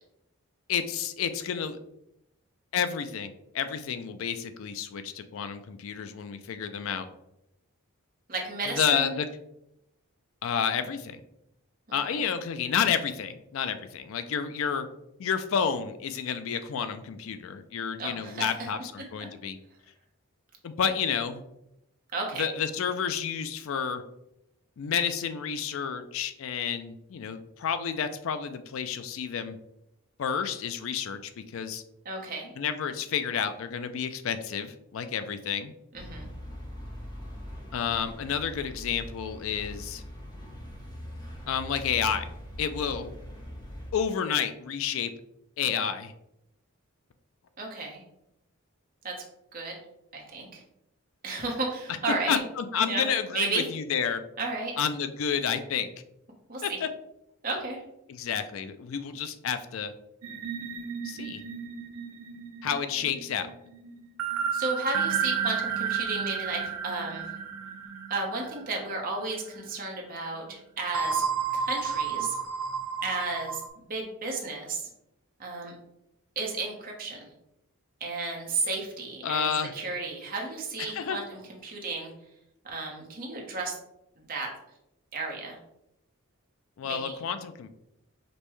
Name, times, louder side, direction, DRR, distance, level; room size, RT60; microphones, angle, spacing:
voice 1, 0.7-1.8 2.7-7.1 8.7-9.3 10.4-11.2 11.9-14.9 15.2-19.6 20.6-21.4 22.3-24.0 24.8-29.6 30.2-31.8 32.6-35.7 37.7-40.0 41.5-42.3 42.6-43.1 43.9-45.1 45.6-46.1 52.3-54.2 54.8-55.9 56.6-56.9 58.1-59.9 61.0-61.4 62.6-63.5 79.2-79.7 80.8-81.2 86.8-87.7, left 7 dB, 65° left, 10 dB, 0.3 m, -30 dB
voice 2, 8.3-9.2 11.9-12.2 18.0-18.5 22.1-22.5 32.0-32.5 35.9-36.3 47.6-48.0 49.0-49.1 49.5-49.8 50.1-50.6 51.2-52.4 52.9-53.1 53.3-53.6 54.4-54.7 56.5-56.8 57.4-57.8 64.5-67.3 68.1-71.2 71.5-72.3 73.0-74.9 75.4-75.7 76.4-77.2 78.0-82.1 82.6-83.7 84.3-84.5 85.1-85.6 86.8-87.1, right 3 dB, 40° right, 0 dB, 0.8 m, -33 dB
sound 1, 35.9-43.9, equal, 20° left, 0.8 m, -42 dB
sound 2, 60.2-69.1 69.5-69.7 70.9-73.7, right 6 dB, 70° right, 0.4 m, -32 dB
5.2 x 2.1 x 3.0 m, 0.83 s
head